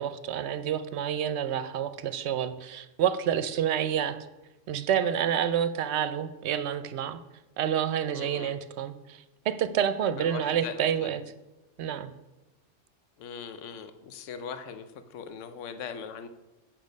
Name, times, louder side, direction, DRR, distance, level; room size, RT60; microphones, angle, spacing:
voice 1, 0.0-4.2 4.7-7.2 7.6-11.2 11.8-12.1, right 9 dB, 65° right, 13 dB, 0.8 m, -28 dB
voice 2, 8.1-8.5 10.2-11.1 13.2-16.3, left 7 dB, 75° left, 10 dB, 1.0 m, -40 dB
8.5 x 6.1 x 5.2 m, 1.0 s
omnidirectional pair, 1.3 m